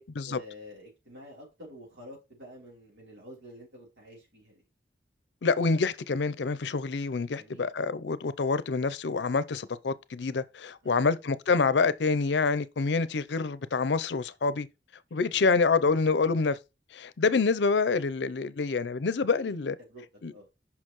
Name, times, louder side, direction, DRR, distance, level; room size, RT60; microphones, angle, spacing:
voice 1, 0.0-4.6 7.4-7.7 10.8-11.2 15.2-15.6 19.8-20.0 20.3-20.5, equal, 85° right, 3.5 m, -49 dB
voice 2, 5.4-14.7 15.1-16.6 16.9-19.8 20.2-20.3, left 4 dB, 70° left, 0.5 m, -27 dB
6.5 x 5.7 x 3.0 m
head